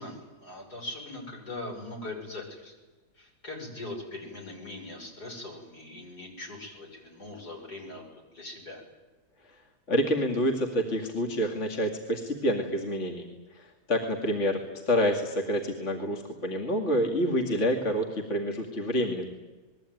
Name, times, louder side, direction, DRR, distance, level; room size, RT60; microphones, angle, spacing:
voice 1, 0.0-2.7 3.2-8.8, left 2 dB, 70° left, 1 dB, 7.0 m, -41 dB
voice 2, 9.9-14.6 14.9-19.3, equal, 45° left, 2 dB, 2.7 m, -28 dB
27.5 x 21.0 x 9.3 m, 1.2 s
omnidirectional pair, 1.7 m